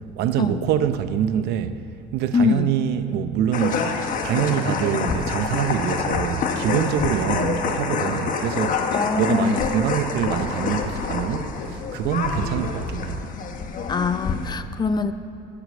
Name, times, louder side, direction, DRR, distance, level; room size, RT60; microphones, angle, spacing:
voice 1, 0.2-1.7 2.1-3.9 4.2-13.2, right 9 dB, 70° right, 0.7 m, -25 dB
voice 2, 2.3-2.7 8.9-9.6 13.9-15.1, left 5 dB, 25° left, 0.5 m, -23 dB
sound 1, 3.5-14.5, left 5 dB, 50° left, 1.2 m, -27 dB
12.5 x 8.3 x 7.6 m
cardioid pair, 125°, 18 cm